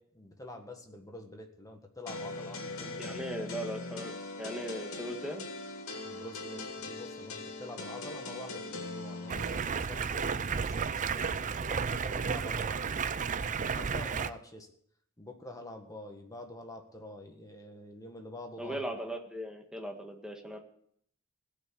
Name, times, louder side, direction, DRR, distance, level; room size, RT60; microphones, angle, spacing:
voice 1, 0.0-3.5 6.0-12.9 13.4-14.7 15.2-18.8, left 1 dB, 15° left, 4 dB, 1.6 m, -47 dB
sound 1, 2.1-9.7, left 2 dB, 70° left, 2.5 m, -41 dB
voice 2, 3.0-4.1 4.4-5.4 18.6-20.6, equal, 5° right, 2 dB, 1.8 m, -38 dB
Stream, 9.3-14.3, right 5 dB, 35° right, 0.5 m, -32 dB
17.0 x 5.9 x 8.5 m, 0.66 s
head